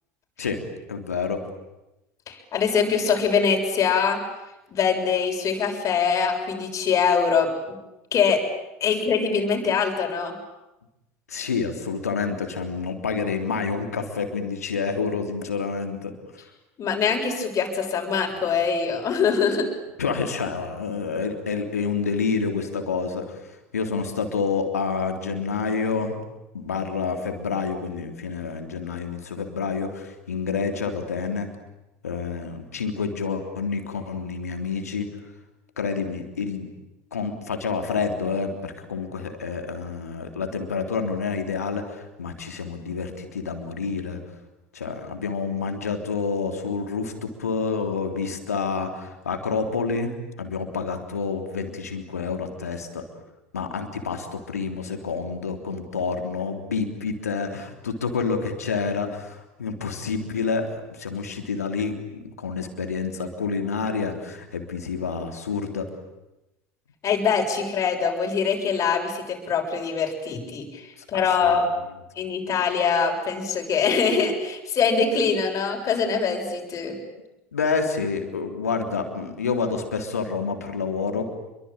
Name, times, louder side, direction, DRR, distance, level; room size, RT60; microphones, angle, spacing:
voice 1, 0.9-1.5 11.3-16.1 20.0-26.2 26.5-31.5 32.0-35.1 35.8-36.7 37.1-44.2 44.7-50.1 50.4-53.0 53.5-65.9 71.0-71.6 77.5-81.3, left 5 dB, 80° left, 5 dB, 3.5 m, -28 dB
voice 2, 2.3-4.2 4.7-7.5 8.1-8.4 8.8-10.4 16.8-19.7 67.0-70.8 71.1-71.6 72.2-77.0, left 6 dB, 40° left, 3 dB, 7.0 m, -23 dB
28.5 x 23.5 x 9.0 m, 0.96 s
figure-of-eight pair, 70°, 8 cm